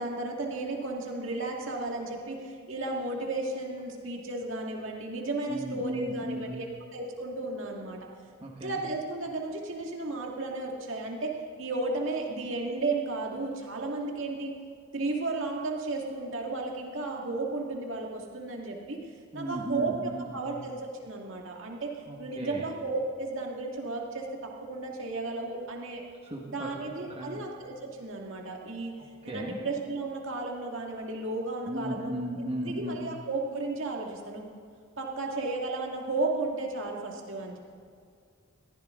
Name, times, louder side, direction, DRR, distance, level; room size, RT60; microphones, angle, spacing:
voice 1, 0.0-8.0 8.6-11.3 11.6-14.5 14.9-19.0 19.3-21.9 22.2-26.0 26.5-28.9 29.2-32.2 32.6-34.4 35.0-37.6, right 2 dB, 60° right, 0 dB, 2.1 m, -34 dB
voice 2, 5.5-6.6 8.4-8.8 19.3-20.6 22.1-22.7 26.2-27.4 29.2-29.6 31.7-33.1, right 1 dB, 30° right, -2 dB, 1.7 m, -36 dB
22.5 x 15.0 x 3.8 m, 2.2 s
head